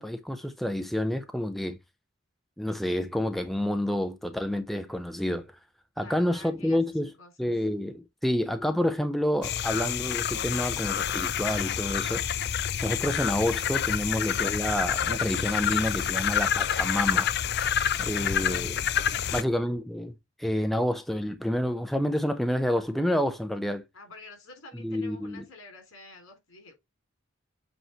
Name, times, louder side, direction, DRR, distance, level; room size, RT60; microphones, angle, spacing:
voice 1, 0.0-1.8 2.6-5.5 6.0-7.1 7.4-12.2 12.8-17.3 18.0-18.8 19.3-20.1 20.4-23.8 24.8-25.4, left 1 dB, ahead, 0.6 m, -29 dB
voice 2, 6.0-7.5 18.3-19.5 23.9-26.7, left 3 dB, 80° left, 3.7 m, -49 dB
sound 1, 9.4-19.4, left 8 dB, 55° left, 0.5 m, -28 dB
8.0 x 3.2 x 4.3 m
head